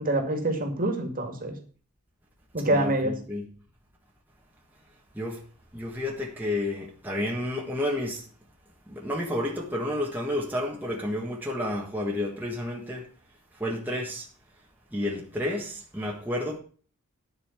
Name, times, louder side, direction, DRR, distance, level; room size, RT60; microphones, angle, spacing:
voice 1, 0.0-1.6 2.5-3.1, right 1 dB, 40° right, 2.2 m, -26 dB
voice 2, 2.7-3.5 5.1-5.4 5.7-8.3 8.9-13.1 13.5-14.3 14.9-16.6, left 1 dB, 10° right, 1.5 m, -31 dB
10.5 x 5.7 x 7.2 m
head